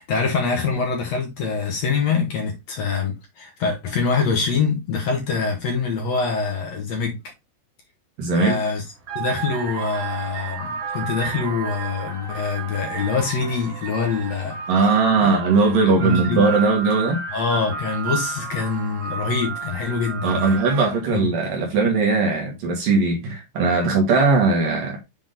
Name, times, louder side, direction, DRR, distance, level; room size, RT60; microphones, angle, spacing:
voice 1, 0.0-7.2 8.3-8.8 9.1-14.6 15.2-15.3 15.7-16.4 17.3-20.6 21.1-21.3, left 5 dB, 70° left, 1.6 m, -24 dB
voice 2, 8.2-8.6 14.7-17.2 20.2-25.0, right 4 dB, 60° right, 2.8 m, -19 dB
sound 1, 8.5-8.6 9.0-21.1, right 6 dB, 85° right, 1.3 m, -32 dB
7.9 x 3.7 x 3.7 m
omnidirectional pair, 5.0 m